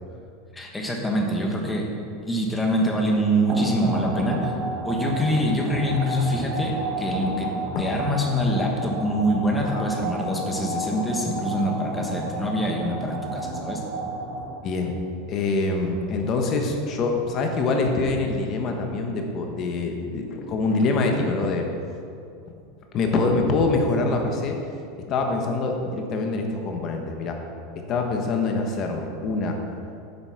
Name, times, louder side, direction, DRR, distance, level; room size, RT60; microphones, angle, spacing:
voice 1, 0.5-1.9 2.3-4.5 4.8-7.5 7.8-13.8, equal, 5° left, 0 dB, 1.1 m, -25 dB
sound 1, 3.5-14.8, right 2 dB, 35° right, 1.4 m, -31 dB
voice 2, 14.6-14.9 15.3-21.7 22.9-24.6 25.0-27.4 27.7-29.6, left 3 dB, 30° left, 3 dB, 1.1 m, -25 dB
9.7 x 7.7 x 5.8 m, 2.6 s
supercardioid pair, 175°, 0 cm